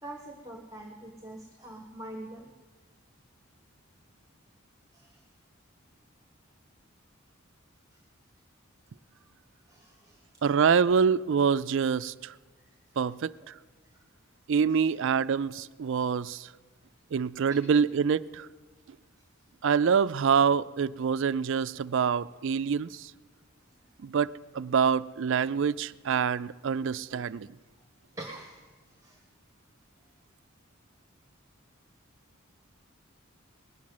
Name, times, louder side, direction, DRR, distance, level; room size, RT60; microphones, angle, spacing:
voice 1, 0.0-2.5 4.9-5.2 7.9-8.0 9.7-10.2 12.6-12.7 13.4-13.5 13.8-14.0 14.7-14.9 17.5-17.6 28.1-28.7 29.0-29.2, right 1 dB, 15° right, 1.5 m, -45 dB
voice 2, 10.4-12.3 13.0-13.5 14.5-16.5 17.1-18.5 19.6-23.1 24.0-24.3 24.6-27.5, right 6 dB, 60° right, 0.4 m, -26 dB
20.0 x 7.4 x 9.4 m
head